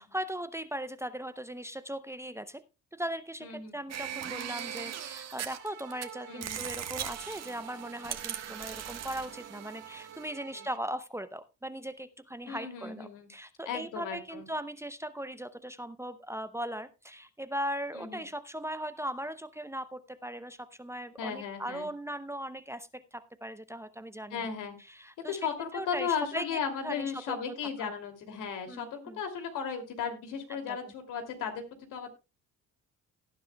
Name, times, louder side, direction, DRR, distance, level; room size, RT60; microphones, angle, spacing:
voice 1, 0.0-2.6 2.9-24.5 24.9-25.4 25.7-27.4 27.8-27.9 28.7-29.2 30.5-30.8, equal, 10° right, 12 dB, 0.6 m, -39 dB
voice 2, 3.4-3.7 6.3-6.7 10.5-10.7 12.5-13.3 13.7-14.5 17.9-18.2 21.2-21.9 24.3-24.8 25.2-31.6 31.9-32.1, left 7 dB, 80° left, 6 dB, 2.7 m, -36 dB
sound 1, 3.9-6.0 6.4-10.3, right 9 dB, 55° right, 1.4 m, -39 dB
sound 2, 5.5-10.8, right 11 dB, 75° right, 1.6 m, -50 dB
18.0 x 10.0 x 2.3 m, 0.27 s
cardioid pair, 105°, 31 cm